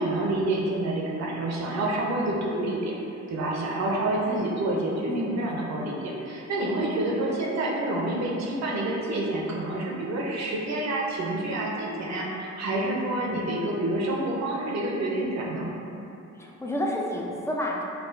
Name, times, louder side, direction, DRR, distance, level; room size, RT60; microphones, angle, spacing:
voice 1, 0.0-2.9 3.3-15.7, right 1 dB, 60° right, -3 dB, 0.8 m, -28 dB
voice 2, 5.1-5.5 16.3-17.8, left 1 dB, 10° left, -3 dB, 0.4 m, -29 dB
4.7 x 2.4 x 2.5 m, 2.8 s
cardioid pair, 90°, 30 cm